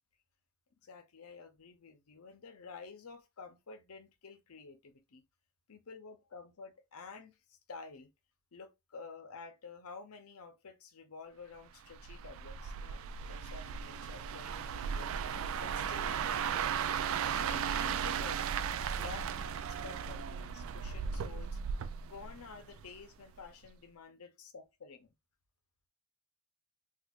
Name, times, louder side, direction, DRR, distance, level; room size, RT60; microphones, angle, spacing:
voice 1, 0.8-5.3 5.7-8.1 8.5-15.1 15.6-16.8 17.3-18.5 18.9-21.6 22.0-25.1, left 4 dB, 75° left, 0.7 m, -51 dB
sound 1, 11.9-23.0 23.4-23.7, right 7 dB, 65° right, 0.3 m, -36 dB
4.4 x 2.5 x 2.4 m
head